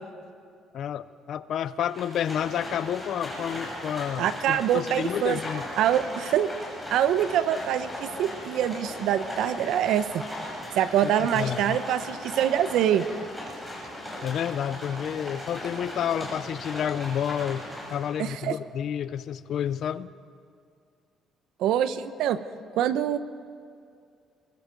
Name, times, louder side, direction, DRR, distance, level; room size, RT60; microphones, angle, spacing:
voice 1, 0.7-5.7 11.0-11.8 14.2-20.1, left 9 dB, 50° left, 15 dB, 0.6 m, -30 dB
Livestock farm animals working animals, 1.9-18.2, left 1 dB, 5° left, 6.7 m, -38 dB
voice 2, 4.2-5.4 5.8-6.5 6.9-10.2 10.7-13.1 18.2-18.6 21.6-22.4 22.8-23.2, right 10 dB, 70° right, 12 dB, 0.9 m, -25 dB
25.0 x 22.5 x 5.3 m, 2.3 s
cardioid pair, 170°, 0 cm